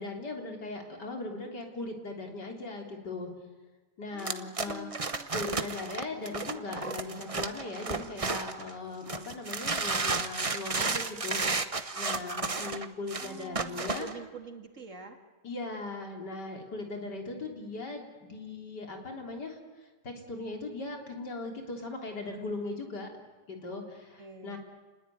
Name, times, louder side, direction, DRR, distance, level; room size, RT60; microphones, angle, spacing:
voice 1, 0.0-3.3 4.0-4.9 5.3-11.6 12.0-14.1 15.4-23.2 23.5-24.6, left 3 dB, 90° left, 2 dB, 4.2 m, -39 dB
voice 2, 4.1-5.3 13.1-15.2 17.3-17.4 24.2-24.6, right 4 dB, 50° right, 5 dB, 2.6 m, -46 dB
sound 1, 4.2-8.7 9.1-14.1, right 3 dB, 25° right, 0.9 m, -32 dB
29.0 x 20.5 x 9.4 m, 1.3 s
omnidirectional pair, 1.8 m